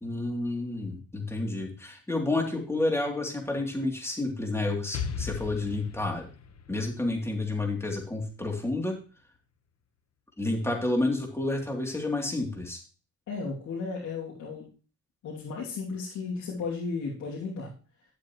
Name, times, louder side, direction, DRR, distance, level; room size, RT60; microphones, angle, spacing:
voice 1, 0.0-6.3 6.7-9.0 10.4-12.8, left 2 dB, 10° left, 1 dB, 3.2 m, -30 dB
Explosion, 4.9-8.7, left 6 dB, 55° left, 1.2 m, -38 dB
voice 2, 13.3-14.7 15.2-17.7, left 4 dB, 80° left, -5 dB, 3.0 m, -34 dB
12.0 x 7.7 x 3.2 m, 0.36 s
cardioid pair, 90°, 30 cm